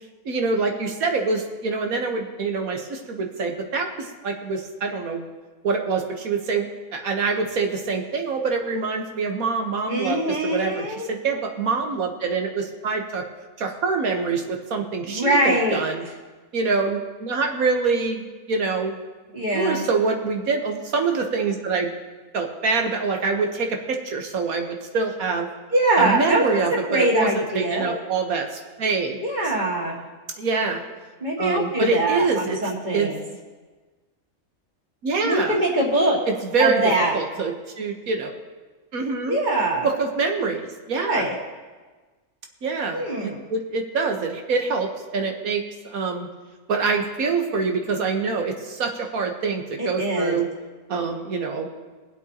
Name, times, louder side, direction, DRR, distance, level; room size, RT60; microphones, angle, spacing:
voice 1, 0.2-5.2 5.6-13.2 13.6-16.0 16.5-19.0 19.4-21.9 22.3-25.5 26.0-29.2 30.4-30.8 31.4-32.6 32.9-33.1 35.0-35.6 36.3-36.8 37.1-38.3 38.9-39.4 39.8-41.2 42.6-46.3 46.7-50.5 50.9-51.7, right 4 dB, 85° right, 3 dB, 1.6 m, -25 dB
voice 2, 9.9-11.1 15.0-15.8 19.3-19.8 25.7-28.0 29.2-30.0 31.2-33.2 35.2-36.2 36.6-37.2 39.3-39.9 41.0-41.3 42.9-43.4 49.8-50.4, right 1 dB, 35° right, -3 dB, 2.3 m, -23 dB
24.0 x 8.0 x 2.9 m, 1.3 s
omnidirectional pair, 1.5 m